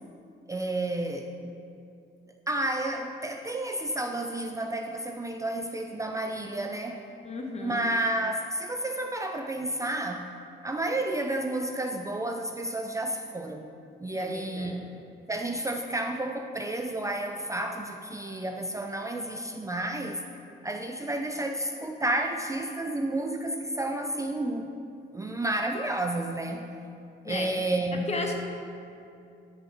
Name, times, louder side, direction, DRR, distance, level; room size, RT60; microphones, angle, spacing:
voice 1, 0.5-1.6 2.5-7.0 7.6-10.3 10.6-13.7 14.0-14.8 15.3-20.2 20.6-24.7 25.1-26.7 27.2-28.1, right 1 dB, 15° right, 3 dB, 0.5 m, -31 dB
voice 2, 7.2-7.8 14.1-14.9 27.2-27.5 28.1-28.4, left 2 dB, 35° left, 3 dB, 1.2 m, -34 dB
10.0 x 6.1 x 4.8 m, 2.6 s
cardioid pair, 90°, 20 cm